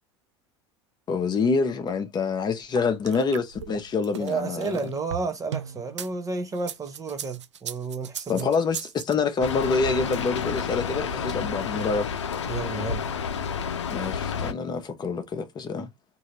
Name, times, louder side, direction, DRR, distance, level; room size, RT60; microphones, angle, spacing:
voice 1, 1.1-4.8 8.3-12.1 13.9-15.9, left 4 dB, 30° left, 0.8 m, -26 dB
sound 1, 2.8-6.1 6.6-9.1, right 9 dB, 80° right, 0.4 m, -36 dB
voice 2, 4.2-8.5 12.5-13.1, right 4 dB, 20° right, 0.6 m, -31 dB
Rain, 9.4-14.5, left 6 dB, 80° left, 0.5 m, -30 dB
2.7 x 2.6 x 3.2 m
figure-of-eight pair, 80°, 15 cm